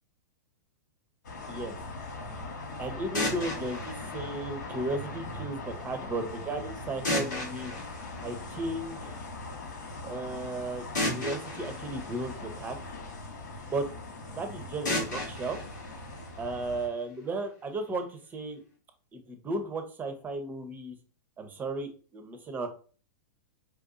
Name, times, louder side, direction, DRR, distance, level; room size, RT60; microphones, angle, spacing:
sound 1, 1.2-16.9, left 2 dB, 75° left, 1.1 m, -41 dB
voice 1, 2.8-7.7 8.2-9.2 10.0-12.8 13.7-13.9 14.3-15.6 16.4-18.6 19.1-20.9 21.4-22.7, right 2 dB, 20° right, 7 dB, 0.7 m, -35 dB
sound 2, 3.1-5.2 7.0-9.0 10.9-13.2 14.8-16.9, left 2 dB, 90° left, 1.5 m, -35 dB
4.5 x 2.6 x 2.5 m, 0.39 s
hypercardioid pair, 110°, 10 cm